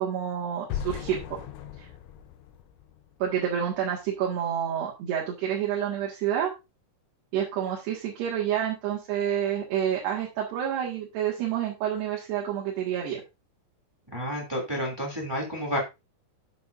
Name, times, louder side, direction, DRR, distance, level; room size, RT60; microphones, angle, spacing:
voice 1, 0.0-1.4 1.8-1.9 3.2-6.5 7.3-13.2, right 9 dB, 65° right, -3 dB, 3.8 m, -28 dB
sound 1, 0.7-3.7, left 9 dB, 80° left, 3.1 m, -38 dB
voice 2, 14.1-15.8, equal, 10° right, -1 dB, 1.3 m, -30 dB
9.9 x 8.0 x 2.6 m, 0.25 s
omnidirectional pair, 5.5 m